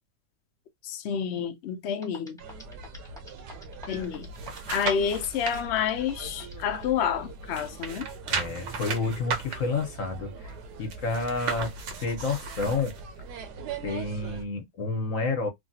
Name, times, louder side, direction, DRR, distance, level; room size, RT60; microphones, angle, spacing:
voice 1, 0.8-2.4 3.9-4.3 4.7-8.1, left 8 dB, 80° left, 0.6 m, -29 dB
sound 1, 1.7-1.8 2.0-7.0, left 1 dB, 5° left, 0.8 m, -46 dB
sound 2, 2.4-14.5, right 3 dB, 75° right, 1.1 m, -42 dB
sound 3, 4.0-5.6 6.1-7.2 7.5-13.0 13.5-13.6, right 6 dB, 60° right, 0.8 m, -35 dB
voice 2, 8.3-11.7 12.0-12.9 13.8-15.5, left 3 dB, 55° left, 1.1 m, -30 dB
3.2 x 2.2 x 2.6 m
omnidirectional pair, 1.8 m